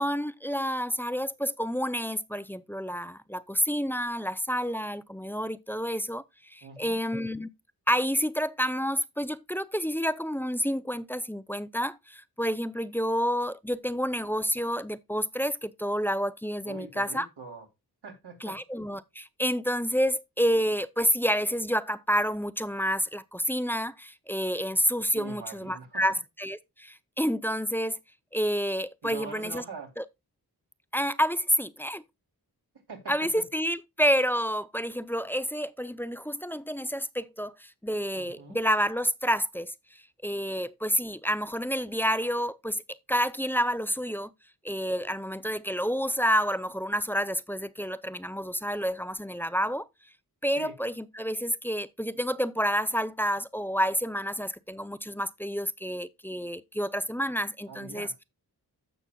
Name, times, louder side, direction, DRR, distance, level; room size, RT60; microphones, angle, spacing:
voice 1, 0.0-7.5 7.9-17.3 18.4-28.0 28.3-29.6 30.0-30.1 30.9-32.0 33.1-39.7 40.2-42.8 43.1-44.3 44.6-49.9 50.4-58.1, equal, 5° left, 0.5 m, -29 dB
voice 2, 6.6-7.0 16.6-17.7 18.0-18.6 25.1-26.1 29.0-29.9 32.9-33.4 38.2-38.6 50.6-50.7 57.7-58.1, right 4 dB, 80° right, 3.0 m, -43 dB
15.0 x 6.1 x 2.3 m
wide cardioid pair, 80°, 40 cm